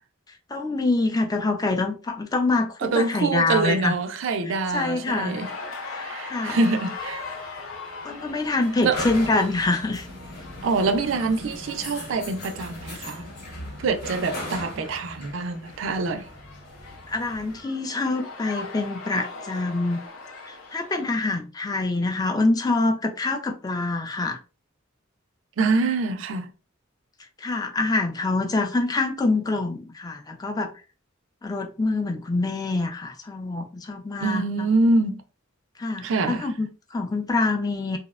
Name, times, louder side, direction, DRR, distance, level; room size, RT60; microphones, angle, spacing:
voice 1, 0.5-3.9 4.7-5.4 5.9-6.6 8.0-10.1 17.1-20.0 20.5-24.4 27.4-30.7 31.4-34.7 35.8-38.0, left 3 dB, 20° left, 0.3 m, -25 dB
voice 2, 2.8-5.5 6.0-7.2 8.8-9.0 10.6-13.3 13.8-16.3 25.6-26.5 34.2-35.2 36.0-36.5, right 3 dB, 65° right, 0.4 m, -25 dB
sound 1, 4.8-21.3, left 3 dB, 80° left, 0.6 m, -41 dB
sound 2, 7.0-17.6, left 1 dB, 50° left, 0.9 m, -39 dB
2.6 x 2.1 x 2.3 m
head